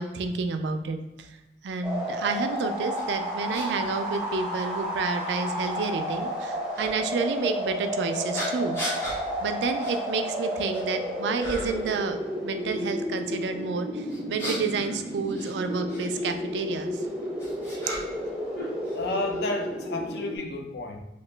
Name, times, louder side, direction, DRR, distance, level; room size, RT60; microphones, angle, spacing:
voice 1, 0.0-1.4 1.6-8.8 9.4-17.0 17.7-17.8, right 4 dB, 75° right, 7 dB, 0.3 m, -30 dB
sound 1, 1.8-20.4, equal, 5° right, 0.6 m, -32 dB
sound 2, 2.9-3.0 3.5-3.7 4.6-4.7 6.7-6.9 8.3-9.2 9.8-10.0 10.4-10.9 11.4-11.9 14.1-16.0 17.0-18.3 18.5-19.4, equal, 15° left, 1.2 m, -36 dB
voice 2, 18.9-21.0, left 2 dB, 65° left, 3 dB, 0.5 m, -31 dB
2.9 x 2.8 x 3.2 m, 1.0 s
head